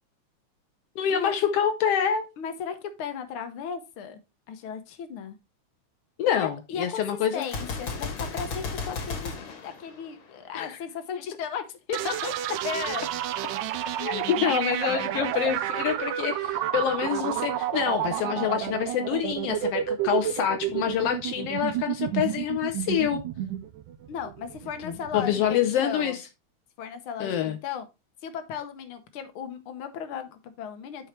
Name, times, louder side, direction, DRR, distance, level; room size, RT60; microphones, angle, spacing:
voice 1, 1.0-2.3 6.2-7.4 10.5-10.8 14.0-23.2 24.8-26.2 27.2-27.6, left 9 dB, 85° left, 1.3 m, -26 dB
voice 2, 2.4-4.2 4.5-5.4 6.4-7.0 7.3-9.3 9.6-13.0 24.1-26.2 26.8-27.9 28.2-31.1, left 7 dB, 70° left, 1.3 m, -35 dB
Gunshot gunfire, 7.4-10.5, left 4 dB, 50° left, 1.7 m, -34 dB
sound 1, 11.9-25.5, right 12 dB, 90° right, 2.1 m, -30 dB
11.5 x 4.6 x 3.1 m
omnidirectional pair, 3.6 m